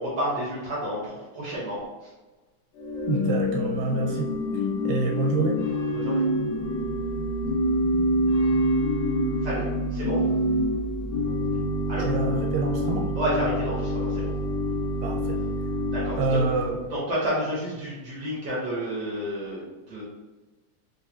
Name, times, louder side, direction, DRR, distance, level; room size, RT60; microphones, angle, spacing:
voice 1, 0.0-2.1 5.9-6.2 9.4-10.2 11.9-12.1 13.1-14.3 15.9-16.4 16.9-20.0, equal, 65° right, -7 dB, 1.0 m, -30 dB
Organ / Church bell, 2.8-16.9, equal, 80° left, 2.3 m, -26 dB
voice 2, 3.1-4.3 4.8-5.6 12.0-13.1 15.0-15.4 16.1-16.7, right 3 dB, 85° right, -1 dB, 2.5 m, -26 dB
5.7 x 2.6 x 2.8 m, 1.2 s
omnidirectional pair, 3.8 m